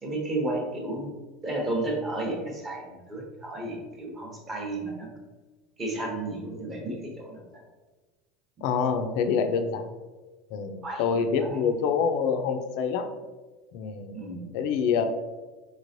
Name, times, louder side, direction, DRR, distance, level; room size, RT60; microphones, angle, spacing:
voice 1, 0.0-1.1 1.4-5.1 5.8-7.4 10.8-11.6 14.1-14.5, right 2 dB, 15° right, 0 dB, 0.8 m, -32 dB
voice 2, 8.6-9.9 10.5-13.1 13.7-14.3 14.5-15.0, left 6 dB, 55° left, 7 dB, 0.4 m, -26 dB
4.9 x 3.1 x 2.6 m, 1.2 s
supercardioid pair, 170°, 0 cm